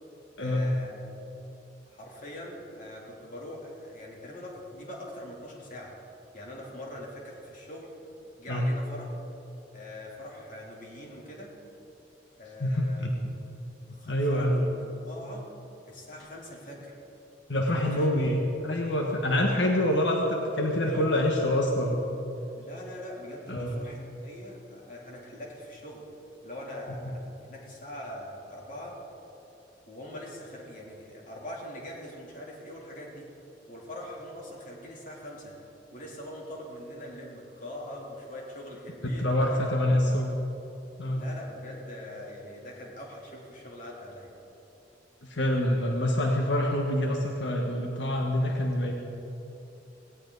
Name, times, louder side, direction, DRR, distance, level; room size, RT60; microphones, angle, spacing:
voice 1, 0.4-1.0 1.9-5.9 6.3-7.9 8.4-9.1 9.7-11.5 12.4-13.1 13.9-15.5 15.8-16.9 17.7-18.2 20.8-21.3 22.3-26.0 26.4-29.0 29.9-33.3 33.7-35.6 35.9-39.6 39.9-40.2 41.1-44.3, left 1 dB, 45° left, -3 dB, 3.4 m, -42 dB
voice 2, 12.6-13.1 13.9-14.5 17.5-22.0 23.5-23.8 27.0-27.1 39.0-40.3 41.0-41.2 45.2-48.9, left 1 dB, 85° left, 0 dB, 1.5 m, -26 dB
18.0 x 18.0 x 4.1 m, 2.9 s
head